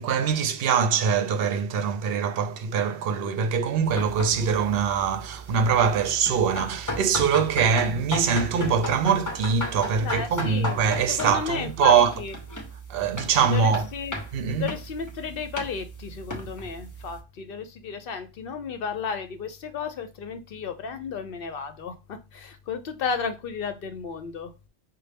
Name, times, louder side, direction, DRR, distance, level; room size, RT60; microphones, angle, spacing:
voice 1, 0.0-12.1 12.9-13.9 14.3-14.7, right 6 dB, 65° right, 0.7 m, -23 dB
sound 1, 3.8-17.2, equal, 20° left, 0.7 m, -36 dB
voice 2, 10.0-10.8 11.1-12.4 13.4-14.2 14.6-24.5, left 6 dB, 65° left, 0.7 m, -33 dB
5.3 x 2.1 x 3.3 m
omnidirectional pair, 1.1 m